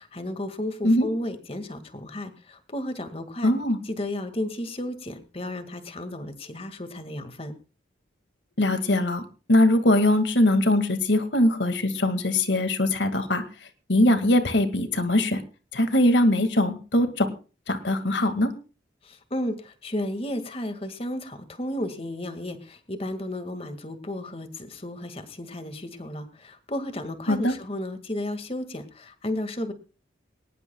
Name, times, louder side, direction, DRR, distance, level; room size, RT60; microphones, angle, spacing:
voice 1, 0.0-3.5 3.8-7.5 19.0-29.7, left 1 dB, 35° left, 9 dB, 2.0 m, -33 dB
voice 2, 3.4-3.8 8.6-9.2 9.5-13.4 13.9-15.4 15.7-17.3 17.7-18.5 27.3-27.5, left 1 dB, 90° left, 9 dB, 2.1 m, -21 dB
21.5 x 19.5 x 2.3 m, 0.35 s
head